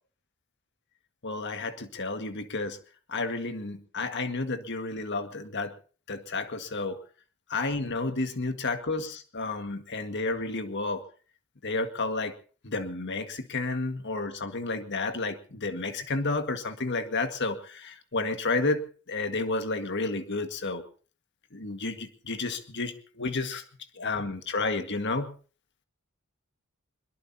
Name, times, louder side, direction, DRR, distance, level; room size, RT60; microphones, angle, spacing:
voice 1, 1.2-2.8 3.1-5.7 6.1-7.0 7.5-11.0 11.6-12.3 12.6-18.8 19.1-20.8 21.5-23.6 24.0-25.3, left 3 dB, 50° left, 7 dB, 1.8 m, -31 dB
23.0 x 21.5 x 2.8 m, 0.39 s
head